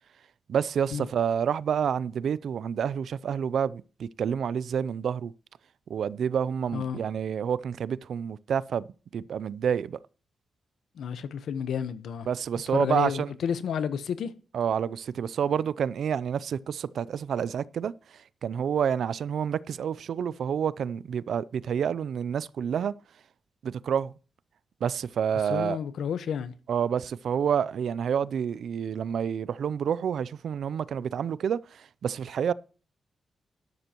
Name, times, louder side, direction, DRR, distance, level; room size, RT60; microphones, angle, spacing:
voice 1, 0.5-5.3 5.9-8.9 9.1-10.0 12.3-13.3 14.5-17.9 18.4-22.9 23.6-24.1 24.8-25.8 26.7-32.5, right 8 dB, 65° right, 0.4 m, -28 dB
voice 2, 11.0-12.3 12.7-14.3 25.5-26.5, left 7 dB, 80° left, 1.0 m, -30 dB
12.0 x 12.0 x 3.0 m
wide cardioid pair, 150°, 0 cm